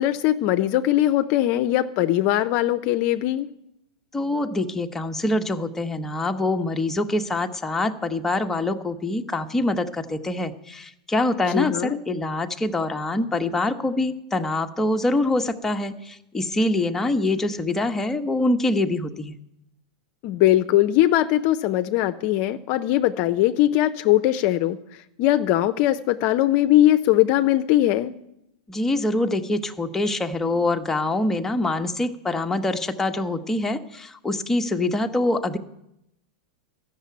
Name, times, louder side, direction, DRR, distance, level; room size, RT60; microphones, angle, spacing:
voice 1, 0.0-3.5 11.5-12.0 20.2-24.8 25.2-28.1, left 14 dB, 50° left, 10 dB, 0.6 m, -20 dB
voice 2, 4.1-19.4 28.7-35.6, left 2 dB, 10° left, 5 dB, 1.0 m, -25 dB
13.5 x 6.7 x 9.4 m, 0.83 s
hypercardioid pair, 120°, 4 cm